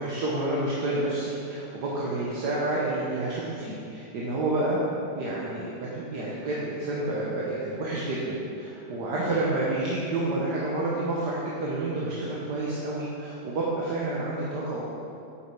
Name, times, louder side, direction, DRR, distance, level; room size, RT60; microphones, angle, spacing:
voice 1, 0.0-4.8 5.1-14.8, right 2 dB, 85° right, -6 dB, 1.8 m, -29 dB
9.6 x 7.3 x 4.8 m, 2.6 s
omnidirectional pair, 1.7 m